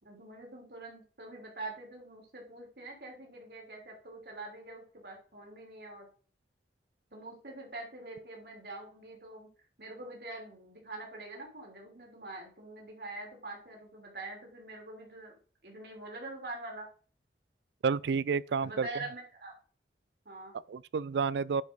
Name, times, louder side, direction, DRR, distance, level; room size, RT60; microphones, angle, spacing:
voice 1, 0.0-6.1 7.1-9.5 9.8-16.9 18.6-19.5 20.3-20.6, right 2 dB, 65° right, 3.6 m, -45 dB
voice 2, 17.8-18.9 20.7-21.6, right 5 dB, 80° right, 0.4 m, -30 dB
9.8 x 5.3 x 4.0 m
head